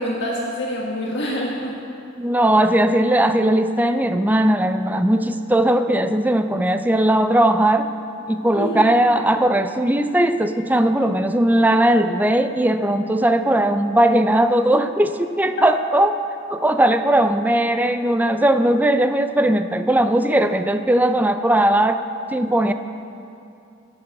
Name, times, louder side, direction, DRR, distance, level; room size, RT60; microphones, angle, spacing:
voice 1, 0.0-1.7 8.5-8.9 15.6-15.7, equal, 60° left, -3 dB, 1.6 m, -26 dB
voice 2, 2.2-7.9 8.3-16.2 16.5-22.0 22.3-22.7, right 1 dB, 10° right, 8 dB, 0.5 m, -18 dB
11.0 x 8.4 x 7.6 m, 2.5 s
head